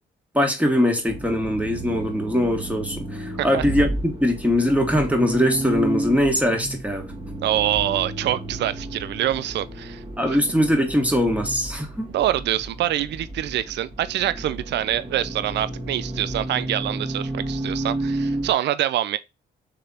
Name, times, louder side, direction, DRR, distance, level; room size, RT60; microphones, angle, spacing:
voice 1, 0.3-7.1 10.2-12.1, equal, 5° right, 1.6 m, -21 dB
Accelerating revving vroom, 1.1-18.5, right 1 dB, 30° right, 1.6 m, -32 dB
voice 2, 7.4-10.0 10.3-10.4 12.1-19.2, right 12 dB, 60° right, 0.4 m, -25 dB
3.7 x 3.3 x 4.0 m
supercardioid pair, 55°, 21 cm